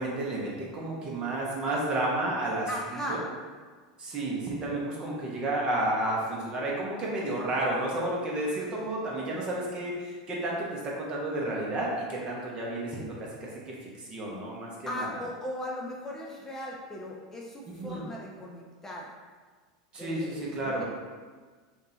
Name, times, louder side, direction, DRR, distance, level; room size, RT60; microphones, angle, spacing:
voice 1, 0.0-2.7 3.1-3.2 4.0-13.5 13.8-15.1 17.7-18.0 19.9-20.8, right 1 dB, 30° right, -4 dB, 1.2 m, -31 dB
voice 2, 2.7-3.2 14.9-19.1 20.0-20.8, left 1 dB, 15° left, -3 dB, 0.6 m, -38 dB
5.2 x 2.6 x 2.8 m, 1.5 s
hypercardioid pair, 100°, 3 cm